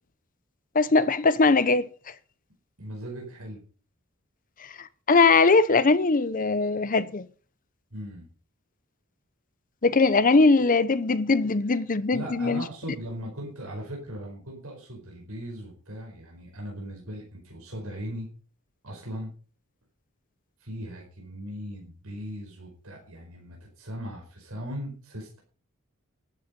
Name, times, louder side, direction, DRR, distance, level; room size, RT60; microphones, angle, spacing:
voice 1, 0.7-1.9 4.8-7.3 9.8-12.6, left 3 dB, 40° left, 0.7 m, -21 dB
voice 2, 2.8-3.6 7.9-8.2 12.1-18.3 18.8-19.3 20.6-25.4, equal, 80° right, 4.8 m, -38 dB
11.5 x 11.5 x 5.3 m
head